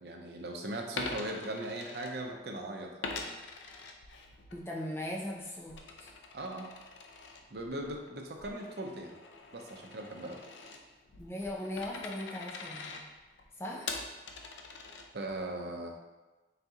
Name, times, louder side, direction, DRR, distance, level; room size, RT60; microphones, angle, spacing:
voice 1, 0.0-2.9 3.2-3.3 6.3-6.7 7.5-9.2 9.5-10.4 15.1-15.9, right 1 dB, 60° right, 1 dB, 0.6 m, -39 dB
Coin (dropping), 0.9-2.6 3.0-4.6 5.0-15.4, left 3 dB, 90° left, 0.5 m, -44 dB
voice 2, 4.5-6.1 11.2-13.0 13.6-14.0, left 1 dB, 15° left, -2 dB, 0.5 m, -39 dB
3.9 x 2.8 x 3.5 m, 1.1 s
head